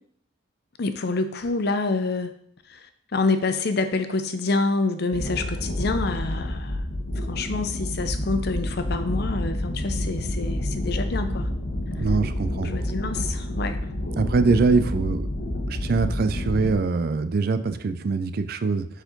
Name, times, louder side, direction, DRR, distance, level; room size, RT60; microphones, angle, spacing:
voice 1, 0.8-2.3 2.7-6.8 7.2-11.5 12.5-13.9, left 3 dB, 55° left, 9 dB, 0.6 m, -27 dB
sound 1, 5.1-16.7, left 1 dB, 85° left, 1.2 m, -29 dB
voice 2, 12.0-12.7 14.2-15.3 15.7-18.9, right 4 dB, 50° right, 11 dB, 0.4 m, -23 dB
7.1 x 4.4 x 3.9 m, 0.65 s
head